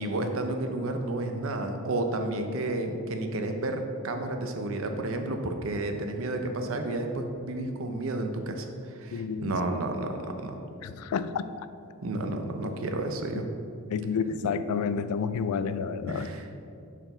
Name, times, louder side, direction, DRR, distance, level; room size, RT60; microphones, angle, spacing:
voice 1, 0.0-8.7 9.0-10.5 11.3-11.4 12.0-13.5 16.1-16.4, right 2 dB, 65° right, 5 dB, 0.6 m, -31 dB
voice 2, 9.1-9.6 10.8-11.5 13.9-16.3, left 6 dB, 85° left, 15 dB, 0.3 m, -30 dB
6.0 x 4.5 x 3.9 m, 2.6 s
head